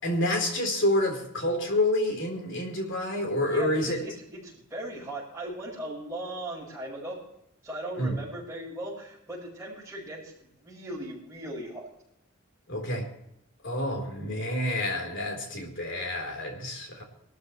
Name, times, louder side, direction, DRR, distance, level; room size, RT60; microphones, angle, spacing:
voice 1, 0.0-4.0 8.0-8.1 12.7-13.1 13.6-17.0, left 1 dB, 55° left, 1 dB, 4.0 m, -28 dB
voice 2, 3.4-7.2 7.6-11.9, right 1 dB, 10° right, -12 dB, 5.8 m, -38 dB
23.5 x 13.5 x 3.3 m, 0.79 s
head